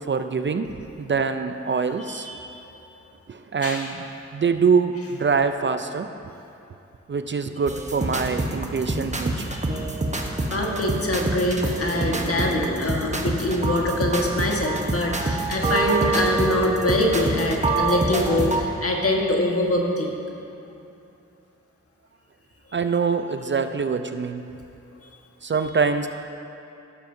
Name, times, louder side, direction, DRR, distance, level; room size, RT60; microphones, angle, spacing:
voice 1, 0.1-2.3 3.3-4.0 4.3-6.1 7.1-9.5 22.7-24.4 25.4-26.1, right 5 dB, 40° right, 8 dB, 0.4 m, -24 dB
voice 2, 2.1-2.5 3.6-3.9 9.3-10.0 10.5-20.1, left 1 dB, 50° left, -1 dB, 1.4 m, -24 dB
sound 1, 7.7-18.6, right 2 dB, 25° right, 1.0 m, -26 dB
15.5 x 6.7 x 2.7 m, 2.7 s
cardioid pair, 40°, 29 cm